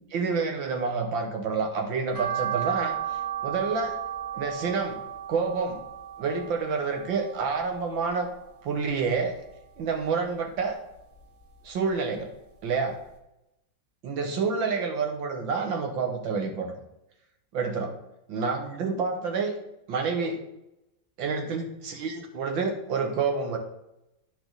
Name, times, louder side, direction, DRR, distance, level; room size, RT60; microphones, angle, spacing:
voice 1, 0.1-3.0 3.4-4.0 4.3-5.0 5.3-5.8 6.2-8.3 8.6-9.4 9.8-10.8 11.6-12.3 12.6-13.0 14.0-16.8 17.5-17.9 18.3-19.6 19.9-20.4 21.2-23.6, right 5 dB, 80° right, 4 dB, 1.9 m, -28 dB
sound 1, 2.1-8.4 8.8-10.0 10.3-11.7 12.1-12.2 12.7-12.8 13.0-13.1, right 10 dB, 20° right, 1.5 m, -35 dB
11.0 x 5.1 x 4.0 m, 0.88 s
omnidirectional pair, 2.1 m